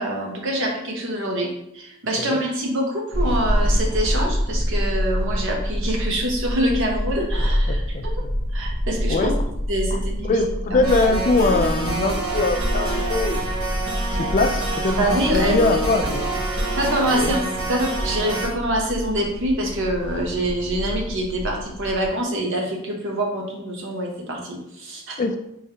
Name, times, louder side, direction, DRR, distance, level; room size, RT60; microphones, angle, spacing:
voice 1, 0.0-8.1 8.5-9.3 9.7-10.4 10.7-10.8 14.9-15.5 16.8-17.4 17.7-25.2, right 1 dB, 65° right, 0 dB, 0.9 m, -25 dB
sound 1, 3.1-22.1, equal, 20° right, 0.9 m, -27 dB
voice 2, 7.7-8.3 9.1-9.4 10.2-13.5 14.1-15.0 15.3-16.3 17.1-17.3 25.2-25.4, left 3 dB, 40° left, 7 dB, 0.3 m, -22 dB
sound 2, 10.8-18.5, right 2 dB, 85° right, 1.3 m, -27 dB
4.8 x 3.1 x 2.9 m, 0.81 s
head